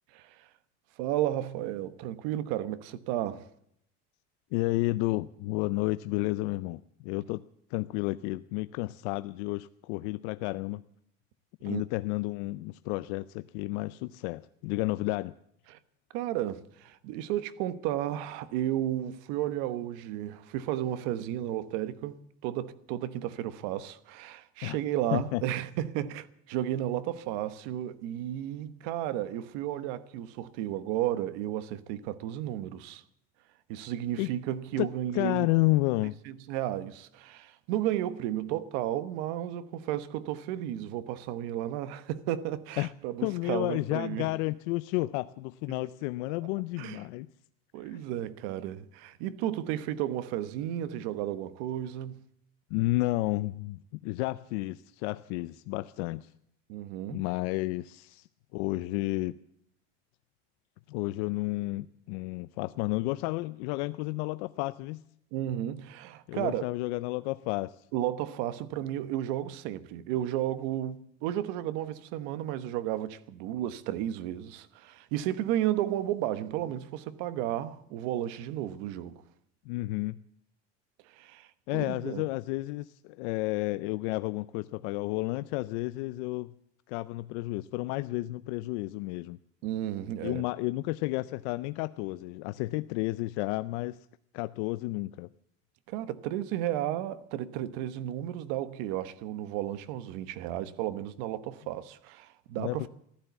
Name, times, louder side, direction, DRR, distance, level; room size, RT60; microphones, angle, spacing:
voice 1, 0.1-0.5 1.0-3.5 11.6-11.8 15.7-15.8 16.1-33.0 33.7-35.5 36.3-44.3 46.8-47.0 47.7-52.2 56.7-57.2 65.3-66.6 67.9-79.2 81.0-81.5 81.7-82.3 89.6-90.4 95.9-102.9, right 12 dB, 70° right, 1.1 m, -33 dB
voice 2, 4.5-7.4 7.7-10.8 11.6-15.3 24.6-24.8 25.1-25.4 34.2-34.3 34.8-34.9 35.1-36.1 42.8-42.9 43.2-47.3 47.8-48.0 52.7-56.3 57.1-58.3 58.5-59.4 60.9-65.0 66.3-67.9 79.7-80.2 81.7-86.5 86.9-89.4 90.2-94.1 94.3-95.3 102.6-102.9, left 20 dB, 85° left, 0.6 m, -31 dB
15.0 x 12.0 x 8.1 m
cardioid pair, 175°, 34 cm